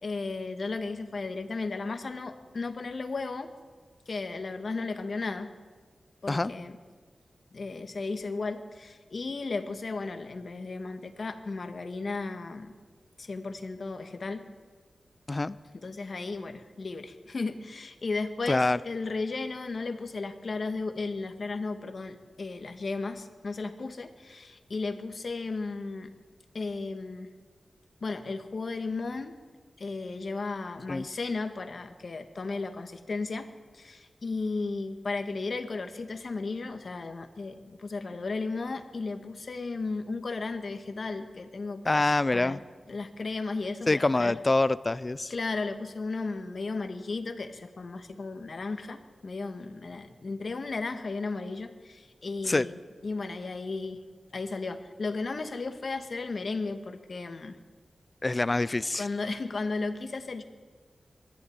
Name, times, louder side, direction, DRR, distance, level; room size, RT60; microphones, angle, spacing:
voice 1, 0.0-3.5 4.1-5.5 6.2-6.8 7.5-12.7 13.2-14.4 15.7-26.1 26.5-27.3 28.0-29.3 29.8-33.5 33.7-42.6 42.9-44.4 45.3-54.0 54.3-57.6 58.9-60.4, left 3 dB, 55° left, 7 dB, 1.8 m, -35 dB
voice 2, 18.5-18.8 30.9-31.1 41.9-42.6 43.9-45.3 52.4-52.7 58.2-59.1, left 2 dB, 30° left, 17 dB, 0.5 m, -25 dB
21.5 x 14.5 x 9.7 m, 1.5 s
wide cardioid pair, 100°, 0 cm